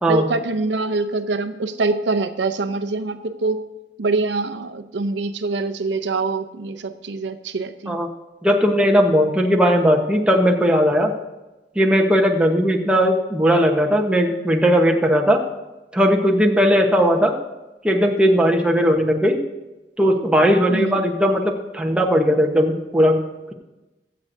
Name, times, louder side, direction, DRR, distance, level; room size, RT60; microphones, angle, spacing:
voice 1, 0.1-3.6 4.0-8.0 20.7-21.0, right 3 dB, 85° right, 8 dB, 0.6 m, -24 dB
voice 2, 8.4-11.1 11.7-15.4 15.9-17.3 17.8-19.4 20.0-23.2, equal, 5° right, 1 dB, 1.0 m, -17 dB
22.5 x 7.6 x 2.6 m, 1.1 s
head